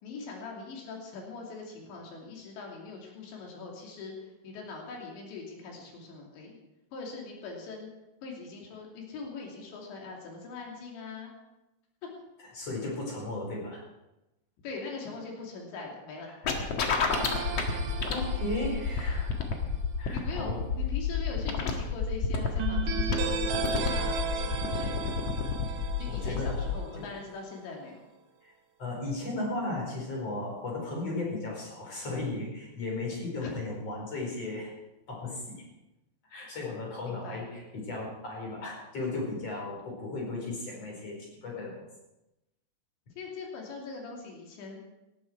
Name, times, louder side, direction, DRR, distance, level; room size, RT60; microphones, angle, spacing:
voice 1, 0.0-4.1 4.4-6.6 6.9-7.9 8.2-11.3 12.0-12.1 14.6-16.3 20.1-25.2 26.0-28.0 33.4-33.5 37.0-37.4 43.2-44.8, left 4 dB, 75° left, 0 dB, 4.9 m, -42 dB
voice 2, 12.5-13.8 16.2-16.5 17.2-17.8 18.1-19.3 20.0-20.6 26.1-26.6 27.0-27.1 28.4-28.5 28.8-34.7 35.1-35.6 36.3-41.9, left 2 dB, 35° left, -1 dB, 5.6 m, -36 dB
sound 1, 16.4-26.8, left 5 dB, 55° left, 1.7 m, -30 dB
sound 2, 17.1-19.4 22.6-27.0, right 6 dB, 60° right, 2.5 m, -35 dB
18.5 x 14.0 x 4.7 m, 0.95 s
omnidirectional pair, 5.3 m